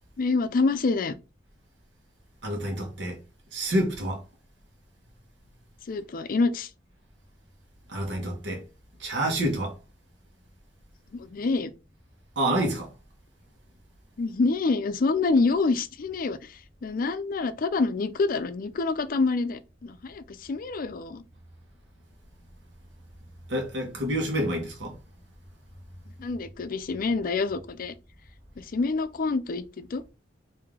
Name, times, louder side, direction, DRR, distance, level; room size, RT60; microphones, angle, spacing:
voice 1, 0.2-1.1 5.9-6.7 11.1-11.7 14.2-21.2 26.2-27.9 28.6-30.1, left 3 dB, 50° left, 0.4 m, -27 dB
voice 2, 2.4-3.2 3.5-4.2 7.9-8.6 9.0-9.7 12.4-12.9 23.5-25.0, right 1 dB, 70° right, 1.2 m, -28 dB
3.2 x 2.7 x 3.7 m
head